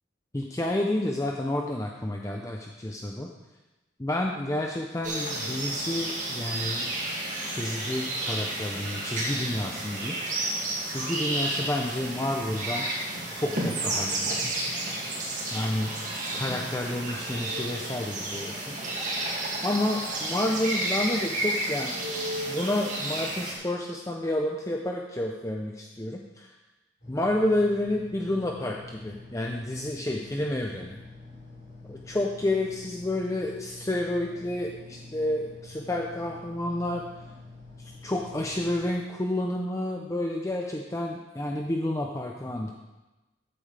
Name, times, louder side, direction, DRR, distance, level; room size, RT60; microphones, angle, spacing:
voice 1, 0.3-3.3 4.0-6.9 7.4-10.2 10.8-12.9 13.3-14.3 15.5-15.9 16.3-18.8 19.6-21.9 22.4-26.5 27.1-31.0 31.9-37.0 37.8-42.7, left 1 dB, 15° left, 1 dB, 0.6 m, -30 dB
sound 1, 5.0-23.5, right 1 dB, 40° right, 2.3 m, -31 dB
sound 2, 27.0-38.9, left 3 dB, 45° left, 4.2 m, -47 dB
14.0 x 8.7 x 3.4 m, 1.1 s
head